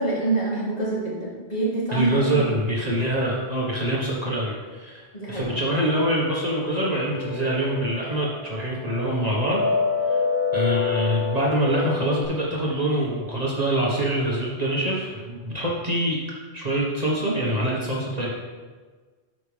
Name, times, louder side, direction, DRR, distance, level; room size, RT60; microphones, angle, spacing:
voice 1, 0.0-2.4 5.1-5.5, right 2 dB, 35° left, -8 dB, 3.0 m, -25 dB
voice 2, 1.9-9.6 10.0-10.2 10.5-16.2 16.5-18.3, right 1 dB, 35° right, -4 dB, 1.3 m, -25 dB
sound 1, 5.4-12.2, left 4 dB, 65° left, 3.1 m, -28 dB
13.0 x 5.1 x 3.3 m, 1.4 s
omnidirectional pair, 1.2 m